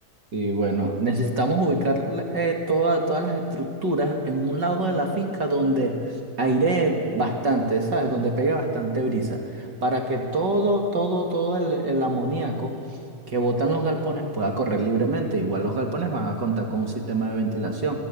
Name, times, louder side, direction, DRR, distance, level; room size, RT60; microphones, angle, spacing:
voice 1, 0.3-6.0 6.4-12.7 13.3-18.0, right 2 dB, 35° right, 2 dB, 2.7 m, -24 dB
28.5 x 21.0 x 8.7 m, 2.4 s
omnidirectional pair, 3.5 m